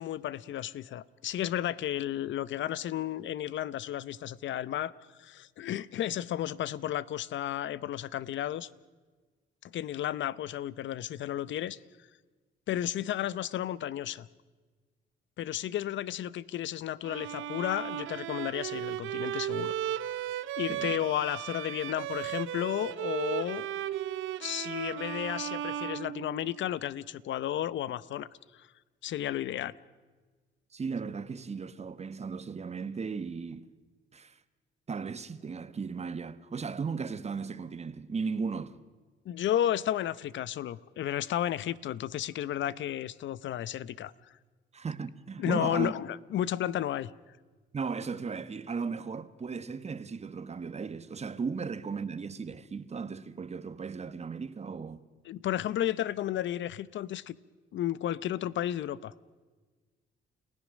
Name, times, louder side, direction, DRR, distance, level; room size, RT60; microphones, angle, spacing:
voice 1, 0.0-4.9 5.2-8.7 9.6-11.8 12.7-14.3 15.4-19.7 20.0-20.3 20.6-23.7 24.4-28.3 28.5-28.7 29.0-29.8 39.2-44.1 45.4-47.1 55.2-57.4 57.7-59.1, left 12 dB, 70° left, 0.8 m, -33 dB
Bowed string instrument, 17.0-26.8, right 12 dB, 85° right, 0.8 m, -36 dB
voice 2, 30.7-33.7 34.1-34.4 34.9-38.8 44.7-45.9 47.7-55.0, right 5 dB, 35° right, 1.3 m, -36 dB
30.0 x 17.0 x 6.3 m
cardioid pair, 90°, 20 cm